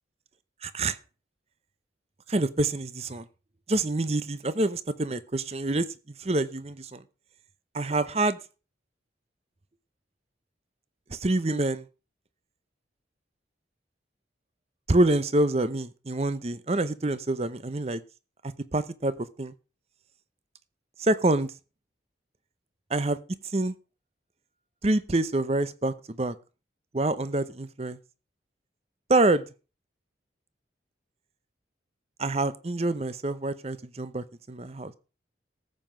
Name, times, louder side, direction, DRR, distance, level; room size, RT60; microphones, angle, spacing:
voice 1, 0.6-1.0 2.3-3.3 3.7-5.9 6.2-7.0 7.7-8.4 11.1-11.9 14.9-18.0 18.7-19.5 21.0-21.5 22.9-23.2 23.5-23.7 24.8-26.3 26.9-28.0 29.1-29.4 32.2-34.9, right 2 dB, 35° right, 0.7 m, -26 dB
14.0 x 7.6 x 5.0 m
head